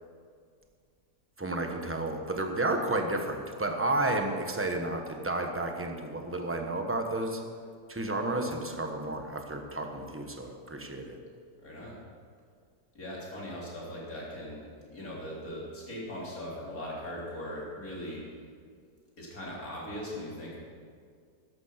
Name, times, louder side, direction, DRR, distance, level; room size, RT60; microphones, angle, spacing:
voice 1, 1.4-7.4 7.9-11.2, right 2 dB, 10° right, 3 dB, 1.0 m, -31 dB
voice 2, 11.6-12.0 12.9-18.2 19.2-20.6, equal, 55° left, -5 dB, 4.1 m, -40 dB
13.0 x 11.5 x 5.9 m, 2.1 s
omnidirectional pair, 1.8 m